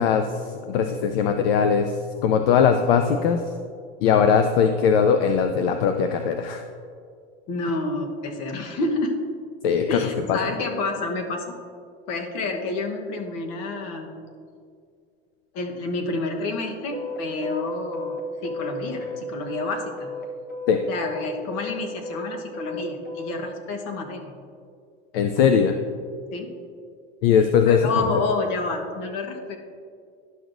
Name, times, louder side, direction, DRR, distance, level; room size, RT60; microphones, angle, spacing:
voice 1, 0.0-3.5 4.0-6.7 9.6-10.5 20.7-20.8 25.1-25.8 27.2-28.2, left 7 dB, 75° left, 7 dB, 0.5 m, -20 dB
voice 2, 7.5-9.2 9.9-11.6 12.1-14.2 15.5-20.1 20.9-24.3 26.3-26.5 27.7-29.6, left 3 dB, 60° left, 3 dB, 1.2 m, -29 dB
sound 1, 16.9-20.2 20.5-23.3, left 3 dB, 30° left, 1.1 m, -33 dB
11.5 x 6.1 x 2.6 m, 2.2 s
supercardioid pair, 95°, 29 cm